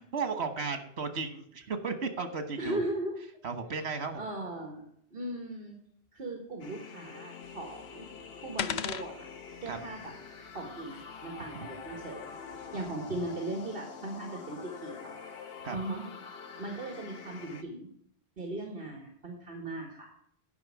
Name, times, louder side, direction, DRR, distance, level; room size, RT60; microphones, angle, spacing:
voice 1, 0.1-2.8 3.4-4.2 9.7-9.8 11.5-11.7 15.6-15.8, right 4 dB, 90° right, 8 dB, 1.4 m, -34 dB
voice 2, 2.6-3.2 3.9-4.8 5.1-5.8 6.1-8.1 8.4-9.3 9.6-10.1 10.5-15.1 15.7-16.0 16.6-17.9 18.4-20.1, right 2 dB, 60° right, 2 dB, 1.8 m, -38 dB
sound 1, 6.6-17.6, left 6 dB, 70° left, 1.2 m, -46 dB
sound 2, 7.4-12.9, left 9 dB, 90° left, 0.9 m, -42 dB
10.5 x 5.3 x 7.2 m, 0.69 s
omnidirectional pair, 1.1 m